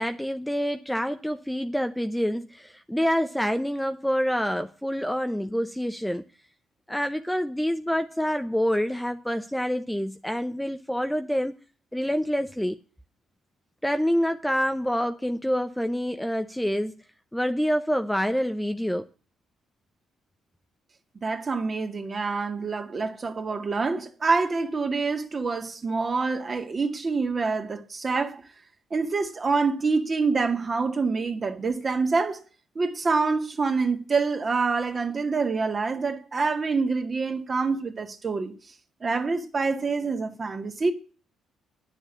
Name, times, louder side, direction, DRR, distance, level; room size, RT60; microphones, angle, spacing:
voice 1, 0.0-6.2 6.9-11.5 11.9-12.8 13.8-16.9 17.3-19.1, equal, 5° left, 0.7 m, -27 dB
voice 2, 21.2-28.4 28.9-32.4 32.8-38.5 39.0-40.9, right 4 dB, 35° right, 2.1 m, -26 dB
9.8 x 7.2 x 8.4 m
cardioid pair, 90°, 0 cm